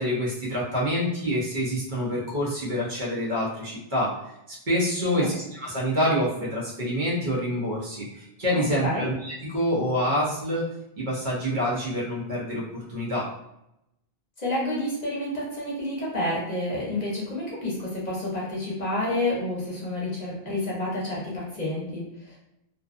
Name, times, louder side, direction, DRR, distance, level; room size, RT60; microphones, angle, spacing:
voice 1, 0.0-4.1 4.5-10.7 11.0-13.3, equal, 55° right, -6 dB, 0.9 m, -27 dB
voice 2, 5.0-5.3 8.5-9.1 14.4-22.4, left 1 dB, 45° left, -5 dB, 0.8 m, -29 dB
2.5 x 2.2 x 2.4 m, 0.83 s
omnidirectional pair, 1.0 m